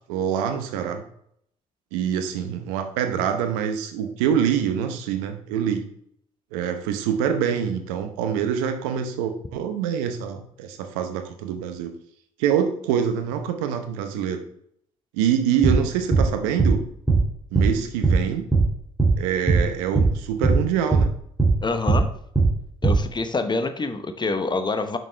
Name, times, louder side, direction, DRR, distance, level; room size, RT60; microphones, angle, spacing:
voice 1, 0.1-1.0 1.9-5.8 6.5-11.9 12.4-14.4 15.1-16.8 17.5-18.4 19.2-21.1, right 8 dB, 80° right, 7 dB, 0.9 m, -25 dB
sound 1, 15.6-15.8 16.1-16.3 16.6-16.8 17.1-17.2 17.5-17.7 18.0-18.2 18.5-18.7 19.0-19.2 19.5-19.6 20.0-20.1 20.4-20.6 20.9-21.1 21.4-21.6 21.9-22.0 22.4-22.5 22.8-23.0, right 4 dB, 10° right, 2.4 m, -18 dB
voice 2, 21.6-22.1 22.8-25.0, left 3 dB, 25° left, 9 dB, 0.9 m, -26 dB
6.4 x 6.2 x 3.3 m, 0.69 s
hypercardioid pair, 55°, 17 cm